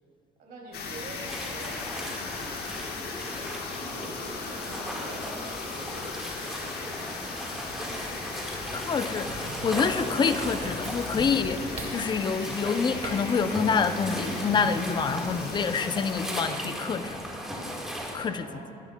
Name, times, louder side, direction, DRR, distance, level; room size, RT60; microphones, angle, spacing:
voice 1, 0.4-1.8 2.4-2.9 3.8-6.3 6.8-7.3 18.2-18.8, right 2 dB, 65° right, -1 dB, 2.6 m, -46 dB
sound 1, 0.7-16.4, left 4 dB, 70° left, 1.3 m, -38 dB
sound 2, 1.3-18.2, equal, ahead, 1.5 m, -37 dB
sound 3, 7.9-13.1 13.4-13.6, right 3 dB, 40° right, 2.1 m, -42 dB
voice 2, 8.7-17.2 18.1-18.5, left 5 dB, 25° left, 9 dB, 0.5 m, -27 dB
14.5 x 11.0 x 2.2 m, 2.4 s
cardioid pair, 110°, 17 cm